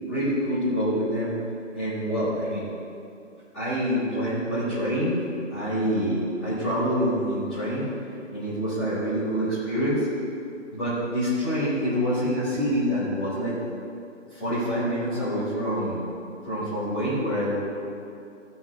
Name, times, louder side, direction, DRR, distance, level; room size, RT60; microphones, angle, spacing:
voice 1, 0.1-1.3 1.7-2.7 3.5-5.2 5.5-7.9 8.3-10.1 10.7-13.5 14.3-16.0 16.4-17.6, equal, ahead, -20 dB, 0.6 m, -26 dB
15.0 x 5.8 x 6.0 m, 2.6 s
figure-of-eight pair, 155°, 37 cm